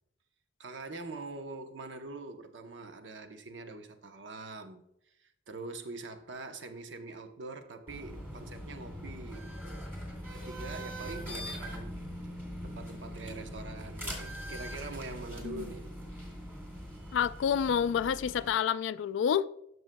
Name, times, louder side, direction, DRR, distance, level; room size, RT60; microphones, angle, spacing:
voice 1, 0.6-4.8 5.2-9.5 10.3-12.0 12.6-15.9, right 3 dB, 75° right, 0.8 m, -44 dB
sound 1, 7.9-18.5, equal, 10° right, 2.1 m, -42 dB
voice 2, 17.1-19.5, left 8 dB, 80° left, 0.3 m, -28 dB
12.5 x 6.2 x 2.2 m
head